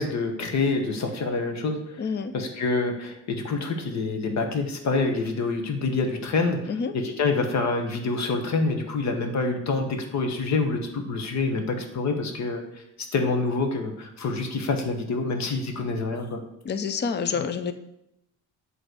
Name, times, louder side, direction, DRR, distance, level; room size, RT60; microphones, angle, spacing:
voice 1, 0.0-2.0 2.3-6.6 6.9-12.6 13.1-16.4, left 3 dB, 65° left, 5 dB, 1.3 m, -26 dB
voice 2, 2.0-2.3 6.7-6.9 16.6-17.7, left 6 dB, 35° left, 10 dB, 0.6 m, -28 dB
7.8 x 3.3 x 6.2 m, 0.82 s
cardioid pair, 90°, 30 cm